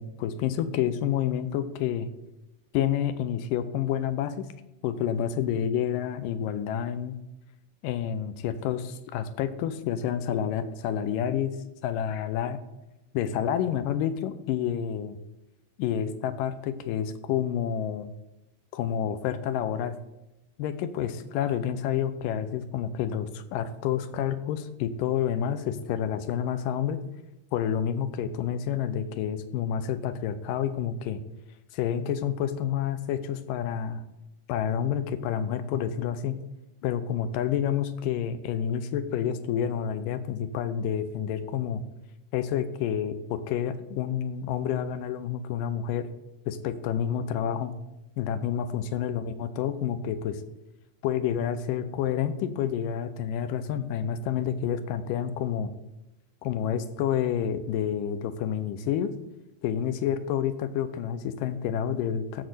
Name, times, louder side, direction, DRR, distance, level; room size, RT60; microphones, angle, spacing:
voice 1, 0.0-2.1 2.7-4.5 4.8-7.2 7.8-11.5 11.8-12.6 13.1-15.1 15.8-18.1 18.7-20.0 20.6-27.0 27.5-31.2 31.7-34.0 34.5-36.3 36.8-41.8 42.3-46.1 46.5-47.7 48.2-50.4 51.0-55.7 56.4-59.1 59.6-62.4, left 9 dB, 90° left, 11 dB, 2.4 m, -29 dB
13.0 x 4.4 x 7.8 m, 0.94 s
omnidirectional pair, 3.8 m